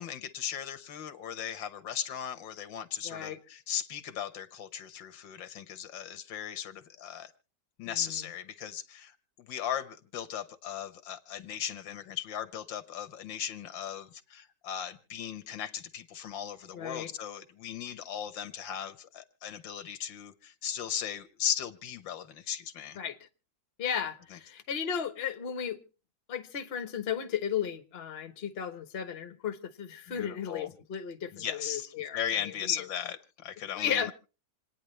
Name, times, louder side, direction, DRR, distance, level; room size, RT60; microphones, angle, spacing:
voice 1, 0.0-7.3 7.8-23.0 24.3-24.4 30.1-30.7 31.3-34.1, left 9 dB, 90° left, 1.8 m, -37 dB
voice 2, 3.0-3.4 7.8-8.2 16.7-17.1 23.0-23.2 23.8-25.8 26.3-32.9 33.7-34.1, left 8 dB, 40° left, 1.1 m, -35 dB
27.5 x 9.7 x 3.2 m
omnidirectional pair, 2.0 m